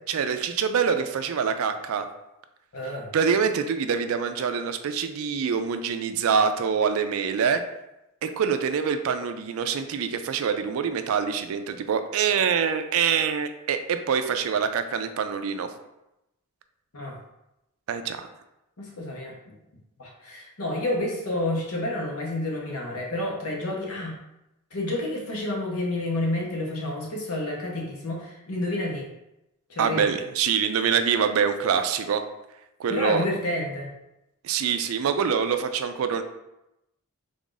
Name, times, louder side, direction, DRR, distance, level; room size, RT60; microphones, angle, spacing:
voice 1, 0.1-2.1 3.1-7.6 8.2-15.7 17.9-18.3 29.8-32.2 32.8-33.2 34.4-36.2, right 6 dB, 70° right, 8 dB, 0.3 m, -25 dB
voice 2, 2.7-3.1 16.9-17.2 18.8-19.6 20.0-24.2 24.7-29.1 29.7-30.1 32.9-33.9, left 1 dB, 75° left, -1 dB, 0.9 m, -29 dB
3.5 x 2.5 x 3.8 m, 0.90 s
head